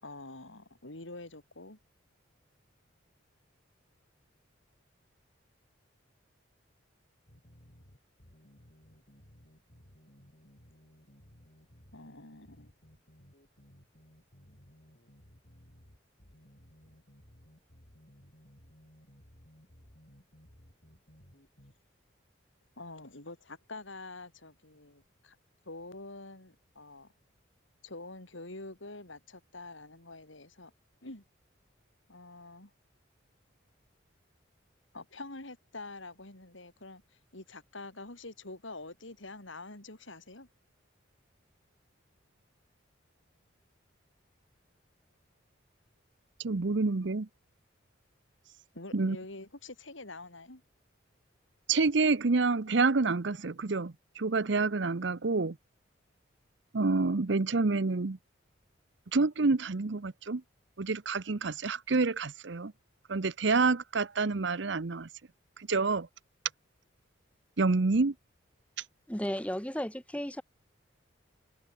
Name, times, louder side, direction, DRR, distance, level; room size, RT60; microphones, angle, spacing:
voice 1, 0.0-1.8 11.9-12.7 22.8-25.4 25.7-27.1 27.8-30.7 31.0-31.2 32.1-32.7 34.9-40.5 48.7-50.6, left 2 dB, 75° left, 4.2 m, -46 dB
sound 1, 7.3-21.7, equal, 45° left, 5.2 m, -59 dB
voice 2, 46.4-47.3 48.9-49.2 51.7-55.6 56.7-58.2 59.1-60.4 60.8-62.7 63.1-65.1 65.7-66.1 67.6-68.1, right 3 dB, 65° right, 0.7 m, -28 dB
voice 3, 69.1-70.4, equal, 5° left, 1.5 m, -34 dB
head